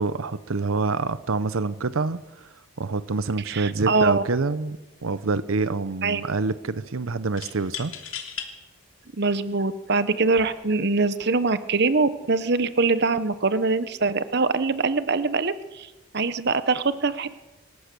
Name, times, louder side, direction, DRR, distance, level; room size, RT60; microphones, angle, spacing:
voice 1, 0.0-2.5 2.8-7.9, right 3 dB, 90° right, 14 dB, 0.8 m, -26 dB
voice 2, 3.5-4.2 6.0-6.2 9.2-15.9 16.1-17.4, right 3 dB, 55° right, 13 dB, 1.0 m, -23 dB
sound 1, 4.8-5.4 7.4-8.5 9.2-9.3 10.2-10.5, left 9 dB, 70° left, 3.1 m, -37 dB
26.5 x 14.5 x 6.8 m, 1.1 s
head